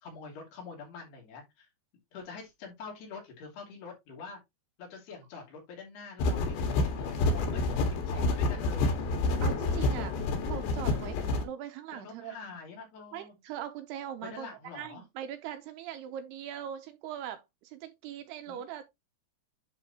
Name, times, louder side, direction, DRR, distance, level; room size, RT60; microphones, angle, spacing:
voice 1, 0.0-1.7 2.1-4.4 4.8-9.0 11.9-13.3 14.2-15.0 18.5-18.6, left 5 dB, 70° left, 4.7 m, -45 dB
sound 1, 6.2-11.4, left 2 dB, 85° left, 3.8 m, -28 dB
voice 2, 9.4-10.2 10.4-12.4 13.1-18.8, right 10 dB, 80° right, 2.6 m, -41 dB
10.5 x 4.3 x 2.9 m
omnidirectional pair, 5.0 m